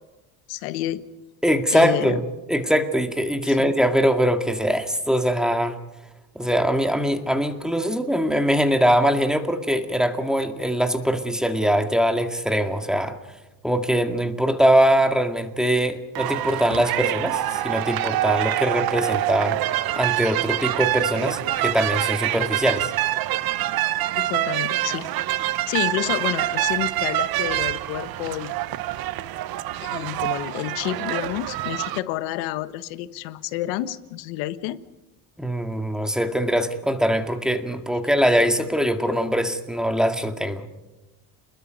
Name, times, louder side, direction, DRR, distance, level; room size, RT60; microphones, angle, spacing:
voice 1, 0.5-1.0 1.7-2.2 3.4-3.7 24.1-25.1 25.4-28.5 29.8-34.8, left 14 dB, 90° left, 13 dB, 1.4 m, -29 dB
voice 2, 1.4-2.2 2.5-5.8 6.4-13.2 13.6-19.6 19.9-22.9 35.4-40.7, equal, ahead, 6 dB, 2.0 m, -22 dB
sound 1, 16.2-32.0, right 15 dB, 55° right, 1.0 m, -26 dB
28.0 x 21.0 x 5.4 m, 1.1 s
cardioid pair, 120°, 44 cm